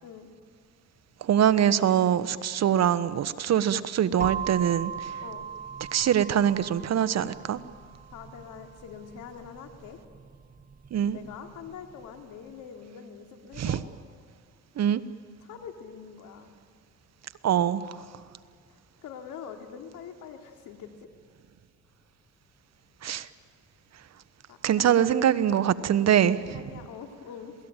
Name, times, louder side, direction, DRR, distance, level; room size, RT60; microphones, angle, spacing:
voice 1, 1.2-5.1 5.9-7.6 10.9-11.2 13.6-13.8 14.8-15.0 17.4-18.0 23.0-23.3 24.6-26.4, right 9 dB, 60° right, 13 dB, 1.2 m, -23 dB
sound 1, 4.2-12.0, right 7 dB, 30° right, 1.0 m, -39 dB
voice 2, 8.1-10.0 11.1-13.8 15.4-16.5 18.7-20.9 24.5-24.8 26.1-27.5, left 7 dB, 85° left, 5 dB, 3.1 m, -44 dB
27.5 x 18.5 x 9.0 m, 2.1 s
cardioid pair, 90°, 30 cm